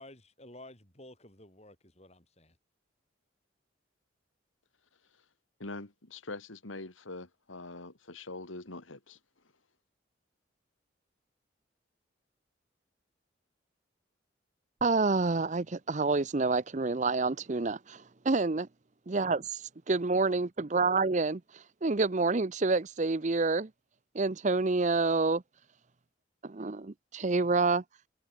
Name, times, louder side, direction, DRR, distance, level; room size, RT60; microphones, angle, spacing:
voice 1, 0.0-2.6, left 1 dB, 35° left, 7.6 m, -52 dB
voice 2, 5.6-9.2, left 2 dB, 90° left, 2.7 m, -43 dB
voice 3, 14.8-18.7 19.1-23.7 24.1-25.4 26.4-27.8, right 3 dB, 35° right, 0.6 m, -28 dB
head